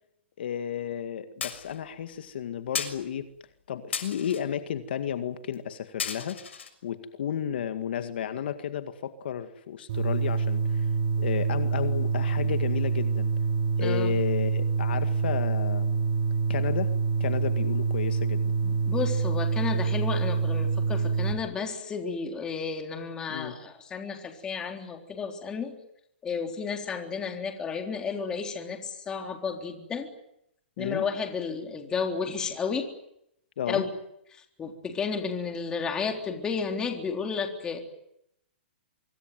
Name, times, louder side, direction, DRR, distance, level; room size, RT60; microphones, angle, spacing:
voice 1, 0.4-3.3 3.7-6.4 6.8-10.9 11.2-13.3 13.8-16.0 16.5-16.9 17.2-18.4 23.3-23.6 30.8-31.0 33.6-33.8, left 9 dB, 60° left, 9 dB, 2.0 m, -32 dB
sound 1, 1.4-1.8 2.8-3.0 3.9-4.4 5.5-5.6 6.0-6.7, left 7 dB, 90° left, 6.4 m, -34 dB
sound 2, 9.9-21.3, right 5 dB, 45° right, 5.7 m, -26 dB
voice 2, 13.8-14.1 18.6-25.7 26.2-30.1 30.8-32.9 33.7-33.9 34.6-37.8, left 5 dB, 10° left, 3 dB, 3.8 m, -32 dB
25.5 x 23.5 x 9.4 m, 0.77 s
hypercardioid pair, 160°, 6 cm